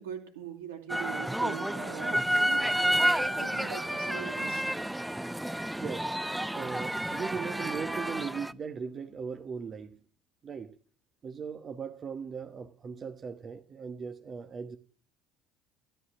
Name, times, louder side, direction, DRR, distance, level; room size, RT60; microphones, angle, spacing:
voice 1, 0.0-4.6, right 9 dB, 85° right, 2.5 m, -42 dB
sound 1, 0.9-8.5, right 1 dB, 5° right, 0.5 m, -30 dB
voice 2, 5.8-6.1 6.5-10.0 10.4-10.8 11.2-14.8, right 6 dB, 40° right, 1.2 m, -38 dB
13.0 x 11.5 x 6.2 m
hypercardioid pair, 70°, 0 cm